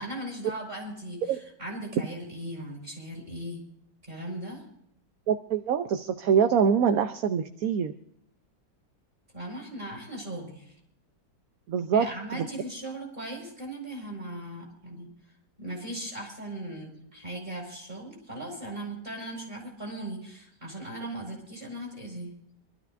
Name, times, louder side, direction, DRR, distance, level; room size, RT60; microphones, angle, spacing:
voice 1, 0.0-3.6 4.0-4.6 9.3-10.8 11.9-15.1 15.6-22.3, right 1 dB, 30° right, 0 dB, 5.2 m, -38 dB
voice 2, 5.3-7.9 11.7-12.1, right 7 dB, 65° right, 8 dB, 1.1 m, -24 dB
25.0 x 13.0 x 2.6 m, 0.71 s
omnidirectional pair, 1.8 m